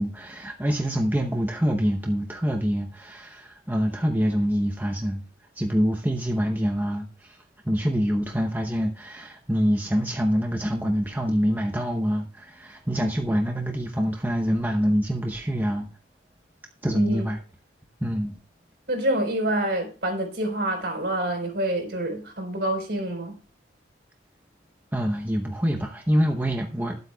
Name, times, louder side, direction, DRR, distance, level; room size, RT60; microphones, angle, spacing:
voice 1, 0.0-5.2 5.6-15.9 16.8-17.4 18.0-18.3 24.9-27.0, equal, 10° right, 0.8 m, -25 dB
voice 2, 16.9-17.2 18.9-23.3, right 1 dB, 60° right, 4.3 m, -27 dB
20.5 x 8.1 x 2.3 m
head